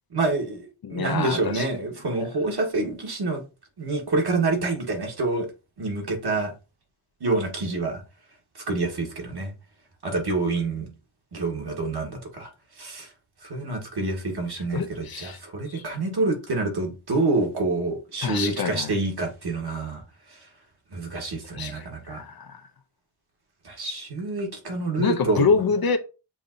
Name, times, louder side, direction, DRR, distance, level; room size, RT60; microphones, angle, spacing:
voice 1, 0.1-3.4 3.8-5.5 5.8-6.5 7.2-8.0 8.5-9.5 10.0-10.9 11.3-12.5 12.8-13.1 13.4-20.0 20.3-20.4 20.9-22.2 23.6-25.5, right 3 dB, 55° right, 1.4 m, -27 dB
voice 2, 0.8-1.7 14.5-15.4 15.7-15.8 18.2-18.9 21.5-22.6 25.0-26.0, left 5 dB, 50° left, 0.5 m, -26 dB
7.0 x 2.6 x 2.5 m
wide cardioid pair, 95°, 47 cm